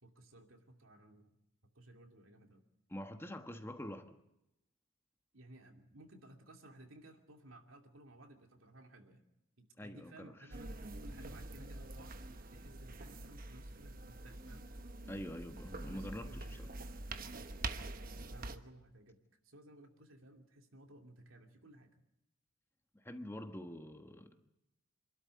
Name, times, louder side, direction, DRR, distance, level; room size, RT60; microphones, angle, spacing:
voice 1, 0.0-1.4 1.7-2.6 5.3-9.2 9.6-14.7 15.9-16.7 18.2-19.2 19.4-22.0, right 1 dB, 75° right, 4 dB, 2.7 m, -58 dB
voice 2, 2.9-4.2 9.8-10.3 15.1-16.7 22.9-24.5, left 1 dB, 10° left, 7 dB, 1.3 m, -46 dB
sound 1, 10.5-18.6, right 2 dB, 45° right, 1.1 m, -45 dB
26.5 x 12.5 x 9.6 m, 0.87 s
head